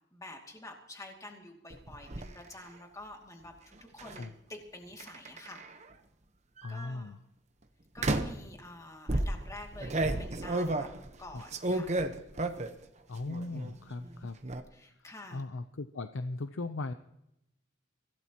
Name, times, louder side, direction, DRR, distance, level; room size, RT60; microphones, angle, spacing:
voice 1, 0.1-5.6 6.7-7.2 7.9-10.9 11.2-11.9 13.5-14.3 14.7-15.4, left 1 dB, 15° left, 1 dB, 2.4 m, -48 dB
sound 1, 1.7-2.3 4.0-4.2 5.0-5.8 6.6-6.9 8.0-8.5 9.1-12.8 13.2-13.7 14.0-14.6, right 2 dB, 35° right, 1.0 m, -32 dB
voice 2, 6.6-7.2 11.3-11.4 13.1-14.4 15.3-16.9, left 2 dB, 85° left, 9 dB, 0.7 m, -38 dB
24.5 x 17.0 x 3.0 m, 0.85 s
head